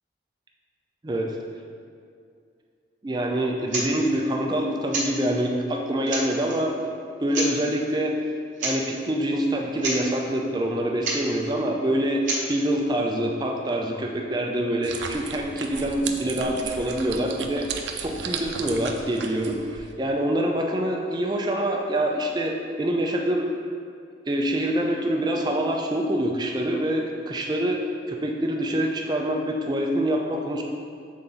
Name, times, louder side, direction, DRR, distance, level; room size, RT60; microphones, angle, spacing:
voice 1, 1.0-1.4 3.0-6.9 7.2-8.3 8.6-23.5 24.3-27.8 28.1-30.6, right 1 dB, 25° right, 1 dB, 0.4 m, -25 dB
sound 1, 3.7-3.9 4.9-5.1 5.7-5.8 6.1-6.6 7.3-7.5 8.6-8.8 9.0-9.1 9.5-9.6 9.8-10.0 11.0-11.2 12.2-12.4, right 2 dB, 45° right, 1.1 m, -28 dB
sound 2, 14.8-19.9, right 5 dB, 80° right, 0.5 m, -35 dB
7.3 x 3.9 x 3.8 m, 2.4 s
head